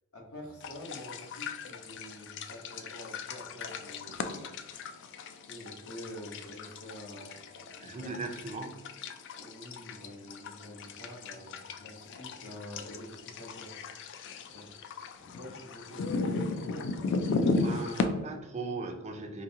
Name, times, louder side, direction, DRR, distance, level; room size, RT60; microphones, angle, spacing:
voice 1, 0.1-4.5 4.8-8.2 9.4-13.7 14.5-14.7 15.2-17.1, equal, 80° left, -1 dB, 1.0 m, -47 dB
sound 1, 0.6-18.1, left 3 dB, 55° left, 0.3 m, -36 dB
voice 2, 7.8-8.8 17.6-19.4, right 3 dB, 30° right, 4 dB, 0.5 m, -38 dB
4.0 x 2.6 x 2.8 m, 1.2 s
head